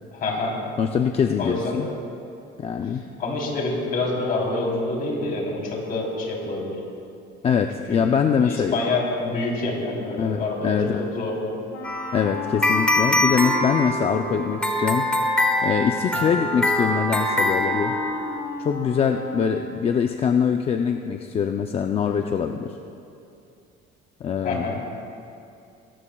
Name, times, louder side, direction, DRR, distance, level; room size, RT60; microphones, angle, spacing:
voice 1, 0.1-0.5 1.4-1.8 3.2-6.7 7.9-8.0 8.4-11.3 16.1-16.4 24.4-25.0, left 2 dB, 45° left, -2 dB, 3.4 m, -27 dB
voice 2, 0.8-1.9 2.6-3.0 7.4-8.7 10.2-11.1 12.1-15.1 15.6-17.9 18.6-22.7 24.2-25.0, left 7 dB, 30° left, 5 dB, 0.5 m, -23 dB
Wind instrument woodwind instrument, 11.7-19.8, left 2 dB, 85° left, 1.7 m, -33 dB
sound 1, 11.8-18.4, left 1 dB, 5° left, 1.3 m, -24 dB
21.5 x 17.5 x 2.3 m, 2.6 s
cardioid pair, 150°, 20 cm